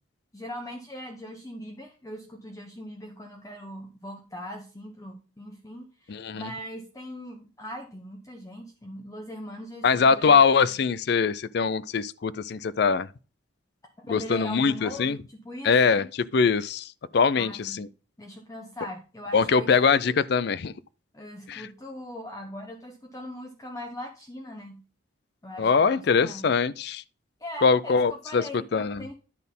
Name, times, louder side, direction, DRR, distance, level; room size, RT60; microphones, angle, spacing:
voice 1, 0.3-10.4 14.0-16.0 17.3-17.8 18.2-19.8 21.1-24.8 25.4-26.5 27.4-29.1, equal, 15° left, 0.9 m, -40 dB
voice 2, 6.1-6.5 9.8-13.1 14.1-15.2 15.6-17.9 19.3-20.7 21.5-21.7 25.6-27.0 27.6-28.4 28.7-29.1, left 5 dB, 55° left, 0.4 m, -22 dB
10.5 x 4.1 x 5.3 m
head